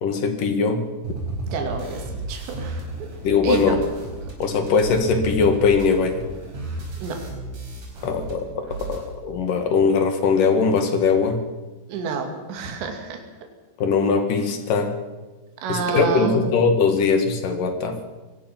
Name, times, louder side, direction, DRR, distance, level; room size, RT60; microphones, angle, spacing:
voice 1, 0.0-0.8 3.2-3.8 4.4-6.2 8.0-11.4 13.8-14.9 15.7-17.9, left 5 dB, 55° left, 7 dB, 3.1 m, -20 dB
sound 1, 1.0-8.3 8.6-9.0, right 2 dB, 40° right, 5.9 m, -33 dB
voice 2, 1.5-3.1 3.4-3.8 7.0-7.2 11.9-13.2 15.6-16.5, right 5 dB, 70° right, 3 dB, 4.6 m, -28 dB
24.5 x 18.5 x 6.0 m, 1.2 s
omnidirectional pair, 5.3 m